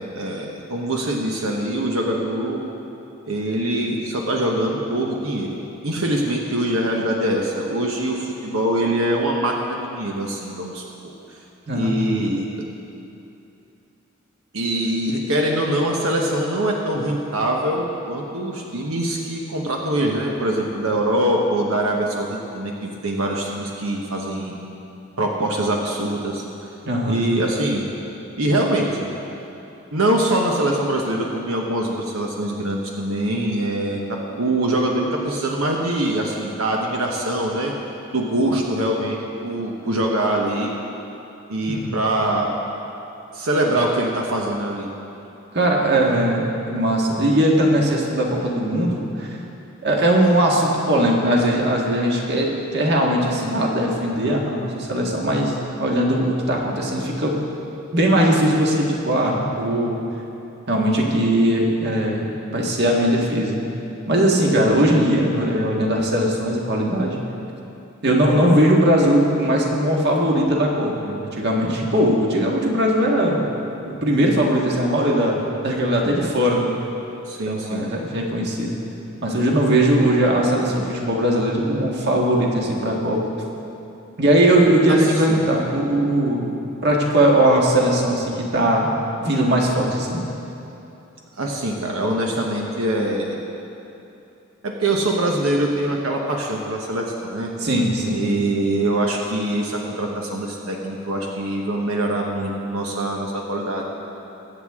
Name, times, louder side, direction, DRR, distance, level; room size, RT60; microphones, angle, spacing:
voice 1, 0.0-2.6 3.3-5.6 5.8-10.8 11.7-12.5 14.5-24.6 25.2-26.4 27.1-27.8 28.4-29.1 29.9-34.0 34.4-37.7 38.1-40.7 41.5-42.5 43.3-44.9 64.8-65.0 77.3-77.8 84.9-85.4 91.3-93.4 94.6-97.5 98.1-103.8, right 1 dB, 85° right, 0 dB, 1.1 m, -23 dB
voice 2, 26.8-27.2 41.7-42.0 45.5-49.3 49.8-57.3 57.9-59.9 60.7-62.2 62.5-63.6 64.1-67.2 68.0-73.4 74.0-76.7 77.5-78.7 79.2-83.2 84.2-86.5 86.8-88.9 89.2-90.2 97.6-98.2, right 1 dB, 55° right, -1 dB, 1.6 m, -19 dB
22.0 x 8.1 x 3.6 m, 2.9 s
head